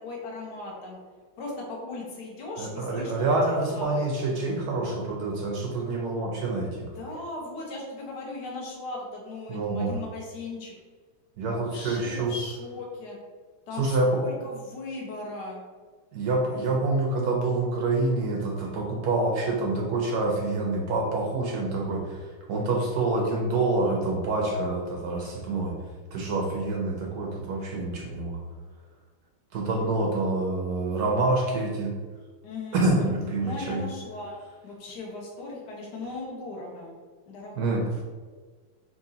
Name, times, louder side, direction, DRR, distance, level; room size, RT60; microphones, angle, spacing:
voice 1, 0.0-1.0 1.4-4.3 6.9-10.7 11.5-13.2 13.7-15.6 32.4-33.1 33.4-34.3 34.6-36.9 37.3-37.7, left 2 dB, 60° left, -2 dB, 1.4 m, -38 dB
voice 2, 2.6-6.9 9.5-9.9 11.4-12.3 13.8-14.2 16.1-22.2 22.5-25.7 26.1-28.4 29.5-31.9 32.7-33.9 37.6-37.8, right 2 dB, 70° right, -1 dB, 0.9 m, -27 dB
5.8 x 2.6 x 2.7 m, 1.5 s
omnidirectional pair, 2.3 m